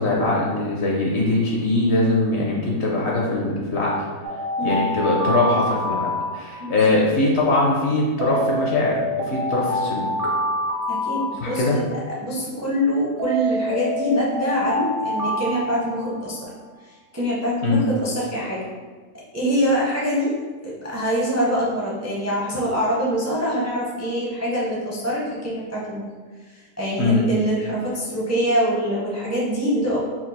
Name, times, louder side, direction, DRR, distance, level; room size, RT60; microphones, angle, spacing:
voice 1, 0.0-3.9 4.6-6.1 6.3-8.9 9.3-10.0 11.4-11.8 17.6-17.8 27.0-27.2, left 2 dB, 60° left, -3 dB, 0.8 m, -21 dB
Alarm, 4.2-6.9 8.2-11.9 13.2-16.4, left 1 dB, 70° right, 1.3 m, -26 dB
voice 2, 10.9-16.5 17.1-18.7 19.3-20.3 20.6-26.0 26.5-30.0, equal, 20° right, -6 dB, 0.4 m, -24 dB
4.3 x 2.3 x 4.1 m, 1.4 s
omnidirectional pair, 1.6 m